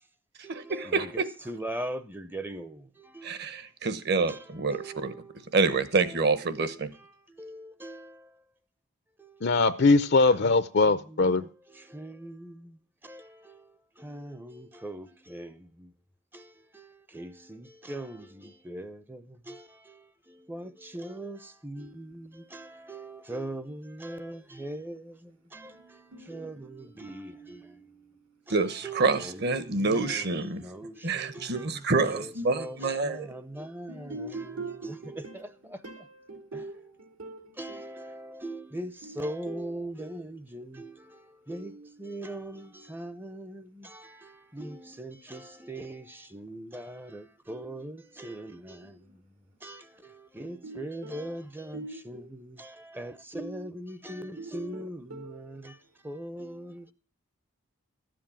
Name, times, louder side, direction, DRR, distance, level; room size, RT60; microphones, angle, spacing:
voice 1, 0.4-3.6 4.3-5.5 6.0-6.2 6.7-6.8 7.3-8.3 9.2-9.5 10.3-10.5 10.8-15.9 16.3-27.8 28.5-28.6 28.8-31.8 32.1-35.8 36.5-36.6 37.6-49.2 49.6-55.8 56.0-56.9, right 1 dB, 10° right, 0.6 m, -41 dB
voice 2, 3.2-5.1 5.5-6.9 28.5-30.6 31.0-33.3, right 3 dB, 45° right, 1.1 m, -27 dB
voice 3, 9.4-11.4, left 3 dB, 50° left, 0.6 m, -21 dB
voice 4, 25.5-28.4 33.9-35.5 35.8-38.0 39.0-39.7 48.8-49.1 50.6-51.2 51.7-52.3 54.4-55.8, right 3 dB, 80° right, 3.1 m, -44 dB
13.5 x 7.7 x 7.3 m
head